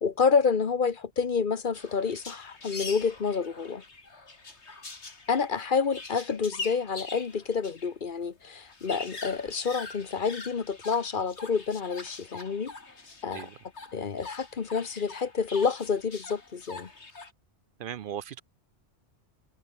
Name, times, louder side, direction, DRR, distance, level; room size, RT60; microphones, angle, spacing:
voice 1, 0.0-3.8 5.3-12.7 13.2-13.5 13.9-16.9, left 5 dB, 50° left, 1.2 m, -28 dB
sound 1, 1.7-7.9 8.2-8.3 8.5-17.3, left 3 dB, 75° left, 3.2 m, -44 dB
voice 2, 17.8-18.4, right 9 dB, 60° right, 0.6 m, -37 dB
omnidirectional pair, 1.2 m